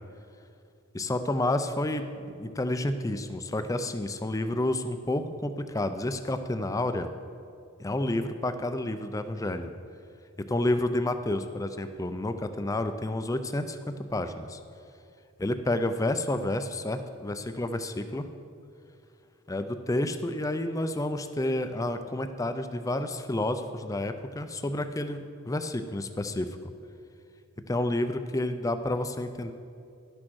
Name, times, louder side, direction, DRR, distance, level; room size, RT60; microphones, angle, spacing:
voice 1, 0.9-7.1 7.8-9.7 10.5-14.6 15.4-18.2 19.5-26.7 27.7-29.5, left 1 dB, 15° left, 9 dB, 0.4 m, -30 dB
11.5 x 6.2 x 6.2 m, 2.5 s
head